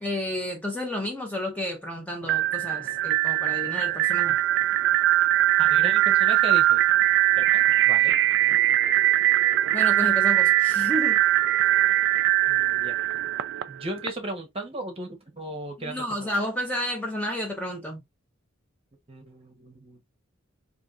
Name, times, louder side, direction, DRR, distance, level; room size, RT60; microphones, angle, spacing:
voice 1, 0.0-4.4 9.7-11.2 15.8-18.0, left 1 dB, 5° left, 0.5 m, -31 dB
sound 1, 2.2-14.1, right 14 dB, 55° right, 0.3 m, -21 dB
voice 2, 5.6-6.8 7.4-8.2 12.5-13.0 13.7-16.3 19.1-20.0, right 2 dB, 30° right, 1.0 m, -36 dB
3.5 x 2.7 x 2.4 m
head